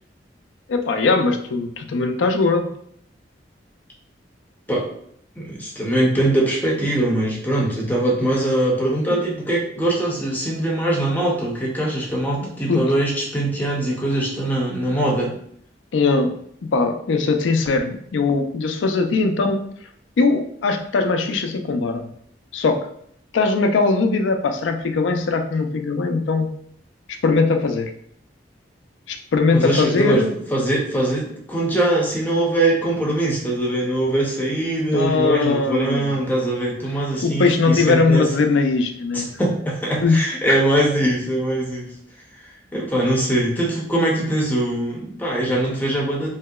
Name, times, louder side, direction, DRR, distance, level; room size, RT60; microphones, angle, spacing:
voice 1, 0.7-2.7 12.7-12.8 15.9-16.3 16.6-19.6 20.2-22.1 22.5-22.9 23.3-26.5 27.2-27.9 29.1-30.3 34.9-36.1 37.2-39.3 40.0-40.2 40.5-40.6, left 3 dB, 80° left, 6 dB, 0.4 m, -20 dB
voice 2, 5.4-15.4 29.5-38.3 39.1-41.8 42.4-46.4, right 1 dB, 10° left, -3 dB, 0.6 m, -22 dB
2.9 x 2.7 x 2.3 m, 0.67 s
head